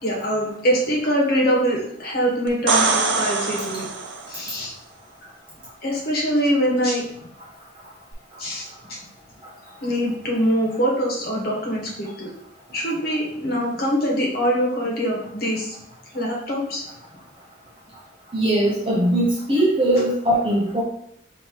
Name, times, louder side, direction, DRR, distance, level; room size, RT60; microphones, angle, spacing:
voice 1, 0.0-3.8 4.3-4.7 5.8-7.0 8.4-9.0 9.8-12.3 12.7-15.7 16.1-16.8, equal, 50° left, -2 dB, 1.1 m, -23 dB
sound 1, 2.5-4.4 8.1-8.2, right 4 dB, 85° right, 0.6 m, -23 dB
voice 2, 18.3-20.8, right 1 dB, 30° right, -4 dB, 0.6 m, -20 dB
5.3 x 2.8 x 2.9 m, 0.71 s
head